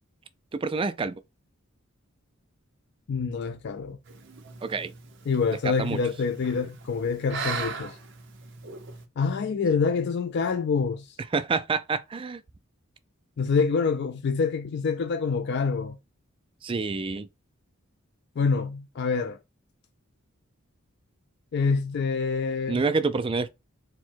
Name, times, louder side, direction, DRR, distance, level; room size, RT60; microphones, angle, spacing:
voice 1, 0.5-1.2 4.6-4.9 5.6-6.0 11.3-12.4 16.6-17.3 22.7-23.5, right 4 dB, 25° right, 0.3 m, -27 dB
voice 2, 3.1-4.0 5.3-8.0 9.2-11.1 13.4-16.0 18.4-19.4 21.5-22.8, left 5 dB, 55° left, 0.4 m, -26 dB
sound 1, 4.1-9.0, right 4 dB, 60° right, 0.8 m, -39 dB
4.4 x 2.2 x 4.4 m
head